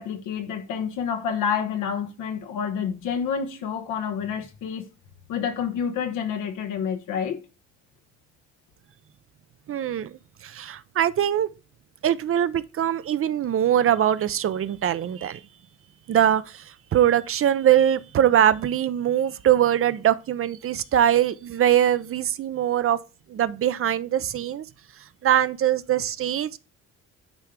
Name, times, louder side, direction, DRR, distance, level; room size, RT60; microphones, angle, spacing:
voice 1, 0.0-4.9 5.3-7.4, left 7 dB, 90° left, 1.1 m, -28 dB
voice 2, 9.7-11.5 12.0-15.4 16.1-23.0 23.3-24.7 25.2-26.6, right 10 dB, 45° right, 0.5 m, -22 dB
8.9 x 3.3 x 3.6 m
cardioid pair, 90°, 30 cm